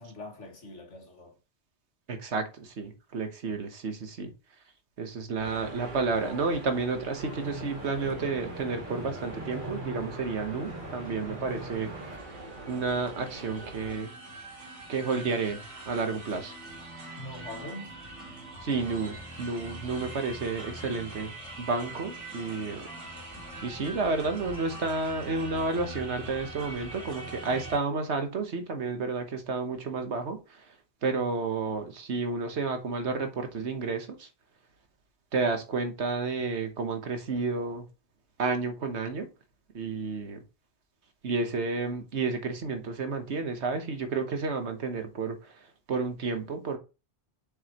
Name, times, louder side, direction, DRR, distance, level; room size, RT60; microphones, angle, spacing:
voice 1, 0.0-1.3 17.2-18.0, left 2 dB, 90° left, 2.2 m, -43 dB
voice 2, 2.1-4.3 5.0-11.9 12.7-14.1 14.9-15.6 15.9-16.5 18.6-21.3 21.6-22.9 23.6-30.4 31.0-34.3 35.3-37.9 38.4-39.3 39.7-40.4 41.2-45.4 45.9-46.8, right 4 dB, 70° right, 1.4 m, -31 dB
sound 1, 5.4-14.0, right 2 dB, 45° right, 1.6 m, -43 dB
sound 2, 7.1-12.2, right 1 dB, 15° right, 2.5 m, -42 dB
sound 3, 11.2-27.8, right 1 dB, 85° right, 2.6 m, -43 dB
7.5 x 5.6 x 3.0 m
omnidirectional pair, 1.2 m